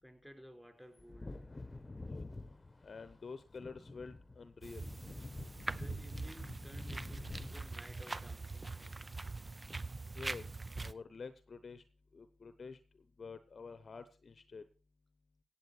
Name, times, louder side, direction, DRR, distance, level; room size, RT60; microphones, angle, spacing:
voice 1, 0.0-1.4 5.7-8.7, equal, ahead, 5 dB, 4.8 m, -56 dB
Wind / Thunder, 1.0-9.2 9.5-9.6, left 2 dB, 30° left, 1.1 m, -48 dB
voice 2, 2.8-4.9 10.1-10.5 10.8-11.8 12.1-12.8 13.2-14.6, left 4 dB, 50° left, 12 dB, 0.9 m, -48 dB
sound 1, 4.6-10.9, right 3 dB, 30° right, 0.6 m, -43 dB
17.0 x 7.6 x 4.4 m, 0.34 s
hypercardioid pair, 40°, 0 cm